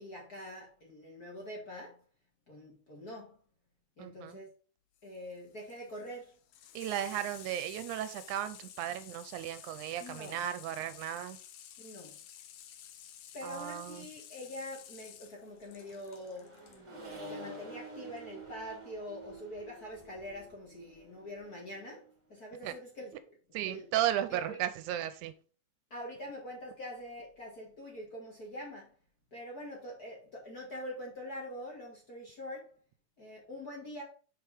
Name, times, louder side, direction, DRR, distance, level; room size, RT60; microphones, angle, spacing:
voice 1, 0.0-2.0 2.5-3.4 4.0-4.5 5.0-6.4 10.0-10.4 11.8-12.2 13.3-16.6 17.3-23.1 23.5-23.9 24.3-24.6 25.9-28.9 29.3-32.7 33.2-34.0, left 1 dB, 35° left, 1.7 m, -44 dB
voice 2, 4.0-4.4 6.8-11.4 13.4-14.1 22.6-22.7 23.5-25.3, right 12 dB, 80° right, 1.9 m, -35 dB
Water tap faucet / Sink (filling or washing), 5.0-16.8 18.1-18.2, left 10 dB, 70° left, 1.7 m, -52 dB
Accelerating revving vroom, 15.5-22.1, right 1 dB, 15° right, 1.2 m, -49 dB
5.9 x 4.7 x 4.8 m
omnidirectional pair, 3.6 m